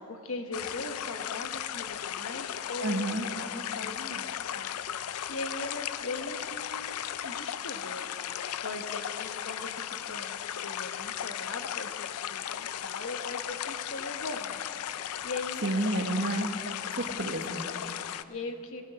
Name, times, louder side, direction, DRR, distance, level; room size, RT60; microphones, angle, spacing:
voice 1, 0.0-3.1 3.4-8.1 8.6-14.7 15.2-15.7 17.7-18.9, left 2 dB, 70° left, 7 dB, 1.1 m, -40 dB
sound 1, 0.5-18.2, left 10 dB, 90° left, 0.4 m, -36 dB
voice 2, 2.8-3.3 15.6-16.5 17.0-17.7, right 2 dB, 55° right, 5 dB, 1.1 m, -30 dB
17.0 x 14.5 x 4.9 m, 2.9 s
head